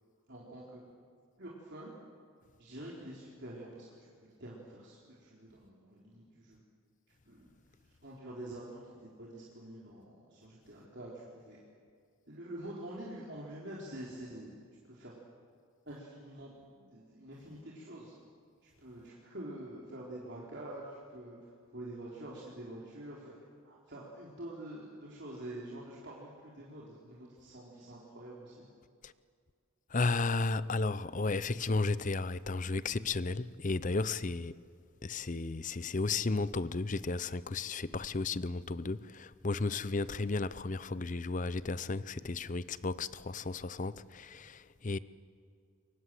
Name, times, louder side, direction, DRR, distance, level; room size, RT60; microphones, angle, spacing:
voice 1, 0.3-0.8 1.4-1.9 2.6-6.6 7.3-7.5 8.0-11.6 12.3-14.6 14.8-15.1 15.9-18.1 18.6-21.4 21.7-23.3 23.6-28.6, right 1 dB, 50° right, 4.0 m, -46 dB
voice 2, 29.9-34.6 35.0-45.0, left 3 dB, 35° left, 0.6 m, -34 dB
28.5 x 23.5 x 7.8 m
head